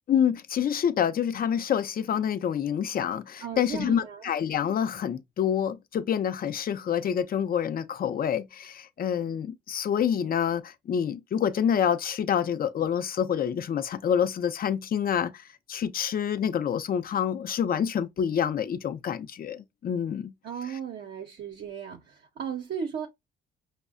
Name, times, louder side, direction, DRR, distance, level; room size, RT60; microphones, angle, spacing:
voice 1, 0.1-20.3, left 8 dB, 50° left, 0.5 m, -27 dB
voice 2, 3.4-4.2 20.4-23.1, right 7 dB, 60° right, 0.7 m, -36 dB
5.3 x 2.1 x 2.5 m
cardioid pair, 90°, 20 cm